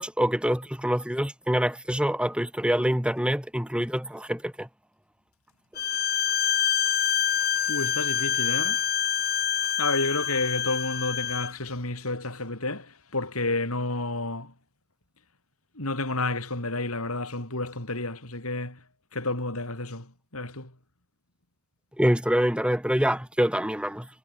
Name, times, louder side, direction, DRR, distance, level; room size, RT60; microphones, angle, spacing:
voice 1, 0.0-4.7 22.0-24.1, equal, 5° right, 3.4 m, -25 dB
Bowed string instrument, 5.8-11.5, left 10 dB, 45° left, 2.7 m, -26 dB
voice 2, 7.7-8.8 9.8-14.5 15.7-18.8 19.1-20.7, left 2 dB, 85° left, 7.9 m, -30 dB
head